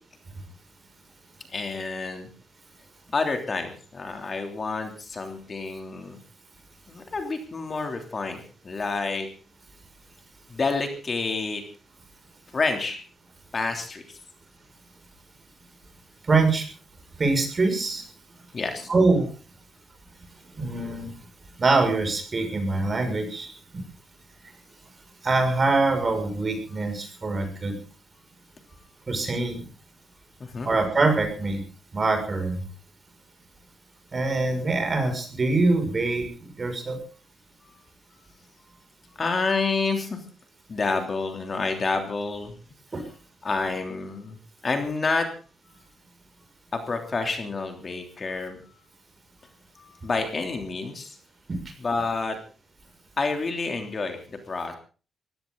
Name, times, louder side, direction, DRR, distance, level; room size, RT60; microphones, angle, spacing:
voice 1, 1.5-2.3 3.1-6.2 6.9-9.3 10.5-11.6 12.5-13.0 13.5-14.2 18.5-18.9 30.4-30.7 38.6-38.7 39.1-40.2 40.7-42.5 43.4-44.4 44.6-45.3 45.7-45.8 46.7-48.8 49.7-51.2 51.8-52.4 53.2-54.7, left 4 dB, 35° left, 5 dB, 3.3 m, -29 dB
voice 2, 16.3-16.7 17.2-18.0 18.9-19.3 20.6-21.1 21.6-23.5 25.2-27.8 29.1-29.7 30.6-31.6 31.9-32.6 34.1-36.3 36.6-37.0 42.9-43.0 51.5-51.6, right 3 dB, 30° right, 6 dB, 6.3 m, -24 dB
21.0 x 16.0 x 4.0 m, 0.37 s
cardioid pair, 125°, 0 cm